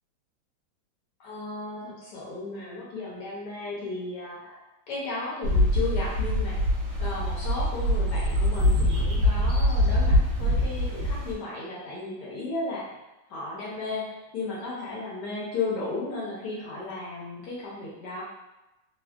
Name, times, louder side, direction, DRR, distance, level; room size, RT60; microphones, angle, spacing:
voice 1, 1.2-4.6 4.9-6.6 7.0-18.2, left 3 dB, 70° left, -5 dB, 1.1 m, -35 dB
sound 1, 5.4-11.3, left 1 dB, 65° right, 1.1 m, -24 dB
3.3 x 2.1 x 2.3 m, 0.98 s
omnidirectional pair, 2.1 m